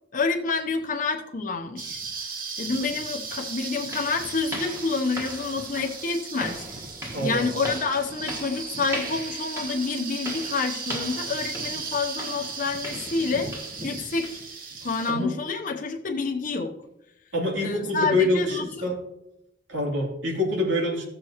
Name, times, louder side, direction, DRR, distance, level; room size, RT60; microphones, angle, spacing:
voice 1, 0.1-2.0 2.6-6.6 7.2-13.5 13.8-14.4 14.8-16.8 17.6-18.9, left 4 dB, 45° left, 2 dB, 0.8 m, -28 dB
sound 1, 1.8-15.1, right 4 dB, 45° right, 1.2 m, -36 dB
sound 2, 2.7-2.8 3.3-13.9 14.2-14.5 14.9-15.1 15.5-15.6 16.2-16.3, equal, 15° right, 1.5 m, -39 dB
voice 2, 7.1-7.5 15.1-15.3 17.3-19.0 19.7-21.0, left 1 dB, 85° right, -2 dB, 3.1 m, -25 dB
15.5 x 6.4 x 3.0 m, 0.84 s
head